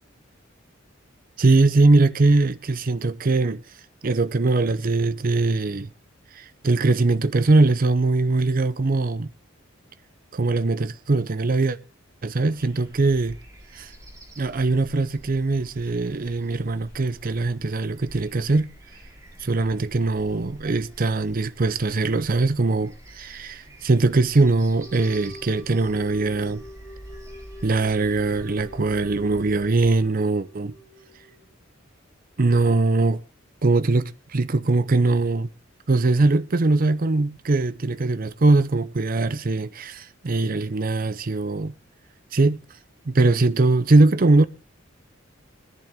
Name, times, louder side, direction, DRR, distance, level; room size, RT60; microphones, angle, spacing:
voice 1, 1.4-3.6 4.0-5.9 6.3-9.3 10.3-11.8 12.2-13.4 13.7-13.9 14.4-18.7 19.4-26.6 27.6-30.7 32.4-33.2 33.6-35.5 35.9-41.7 42.3-42.6 43.1-44.5, right 3 dB, 45° right, 0.6 m, -21 dB
sound 1, 12.6-30.0, equal, 15° right, 2.5 m, -47 dB
sound 2, 24.7-31.5, equal, 10° left, 2.2 m, -45 dB
21.0 x 10.5 x 3.5 m
head